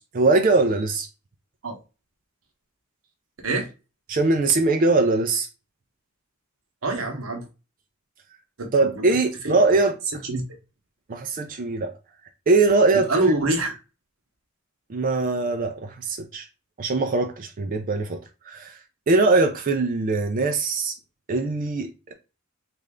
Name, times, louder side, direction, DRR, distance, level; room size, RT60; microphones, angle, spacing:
voice 1, 0.1-1.1 4.1-5.5 8.7-10.2 11.1-11.9 12.5-13.2 14.9-16.4 16.8-18.2 18.5-18.8 19.1-20.9 21.3-22.1, right 3 dB, 40° right, 0.4 m, -21 dB
voice 2, 6.8-7.5 8.6-9.0 9.4-9.6 10.2-10.4 12.9-13.8, right 2 dB, 85° right, 0.9 m, -25 dB
3.2 x 2.5 x 3.5 m
head